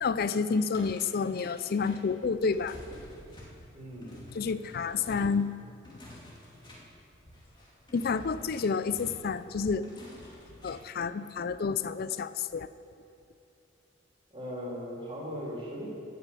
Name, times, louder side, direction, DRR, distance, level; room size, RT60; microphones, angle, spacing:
voice 1, 0.0-2.8 4.3-5.5 7.9-9.9 10.6-12.7, left 5 dB, 50° left, 14 dB, 0.4 m, -29 dB
sound 1, 0.5-10.9, left 1 dB, 25° left, 2.3 m, -50 dB
voice 2, 3.7-4.1 14.3-15.9, equal, 30° right, -4 dB, 3.1 m, -38 dB
13.5 x 6.5 x 8.4 m, 2.5 s
head